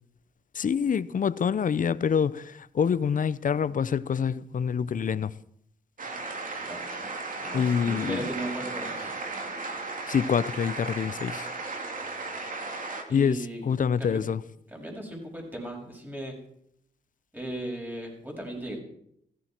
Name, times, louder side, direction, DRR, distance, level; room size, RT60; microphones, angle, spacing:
voice 1, 0.5-5.3 7.5-8.2 10.1-11.5 13.1-14.4, left 7 dB, 50° left, 0.7 m, -26 dB
sound 1, 6.0-13.0, right 3 dB, 50° right, 2.9 m, -35 dB
voice 2, 7.4-9.2 13.1-13.7 14.0-14.3 14.7-16.4 17.3-18.8, right 1 dB, 10° right, 6.9 m, -37 dB
16.5 x 15.5 x 4.6 m
cardioid pair, 75°, 18 cm